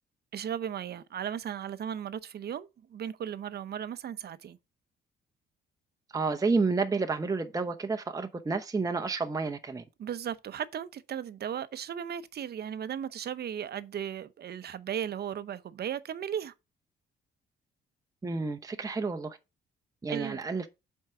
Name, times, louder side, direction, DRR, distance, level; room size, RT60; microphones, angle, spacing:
voice 1, 0.3-4.6 10.0-16.5 20.1-20.4, right 9 dB, 55° right, 0.7 m, -36 dB
voice 2, 6.1-9.8 18.2-19.4 20.0-20.7, right 4 dB, 15° right, 0.8 m, -30 dB
7.3 x 4.6 x 4.9 m
cardioid pair, 90°, 20 cm